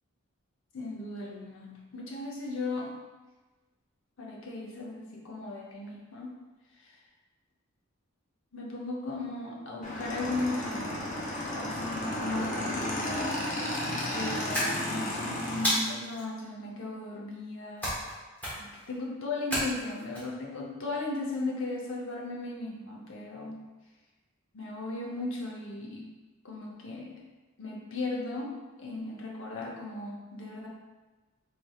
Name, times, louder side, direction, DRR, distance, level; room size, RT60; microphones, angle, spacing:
voice 1, 0.7-3.0 4.2-6.4 6.8-6.9 8.5-11.2 11.5-13.4 14.1-17.9 18.5-23.6 24.5-26.0 26.4-27.2 27.6-30.7, left 2 dB, 70° left, -2 dB, 0.7 m, -37 dB
Motorcycle / Engine, 9.8-15.7, left 1 dB, 35° left, 0.6 m, -33 dB
sound 1, 14.5-15.1 15.6-16.2 17.8-18.1 18.4-18.8 19.5-20.2, equal, 10° left, 1.1 m, -30 dB
4.2 x 3.3 x 2.3 m, 1.2 s
head